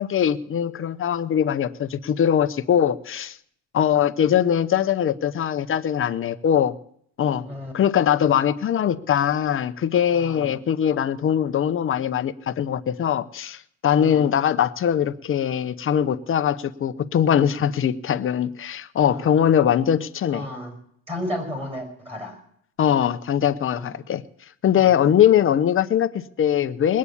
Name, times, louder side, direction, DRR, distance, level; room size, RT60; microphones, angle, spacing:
voice 1, 0.0-3.4 3.7-6.7 7.2-7.5 7.7-20.4 22.8-24.2 24.6-27.0, left 9 dB, 35° left, 11 dB, 0.7 m, -21 dB
voice 2, 10.1-10.5 13.9-14.3 19.0-19.3 20.3-20.7 21.1-22.4 23.7-23.9 24.8-25.0, left 1 dB, 15° right, 4 dB, 5.6 m, -33 dB
20.0 x 8.5 x 8.5 m, 0.68 s
cardioid pair, 145°, 39 cm